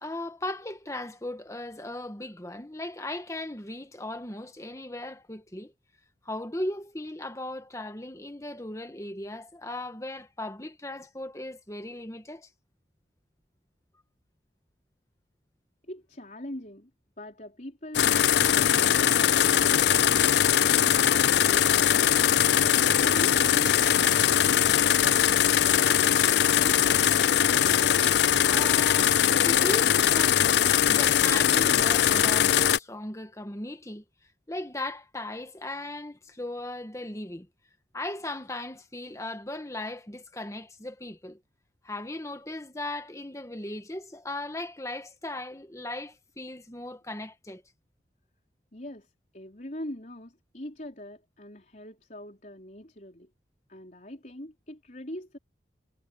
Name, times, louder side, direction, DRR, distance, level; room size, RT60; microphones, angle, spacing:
voice 1, 0.0-5.7 6.2-12.5 28.4-29.2 29.4-30.5 30.9-34.0 34.5-37.5 37.9-41.4 41.8-47.6, left 1 dB, 15° left, 1.4 m, -37 dB
voice 2, 15.9-16.9 17.2-20.2 48.7-53.3 53.7-55.4, left 1 dB, 45° left, 4.5 m, -43 dB
sound 1, 17.9-32.8, left 9 dB, 65° left, 0.4 m, -21 dB
head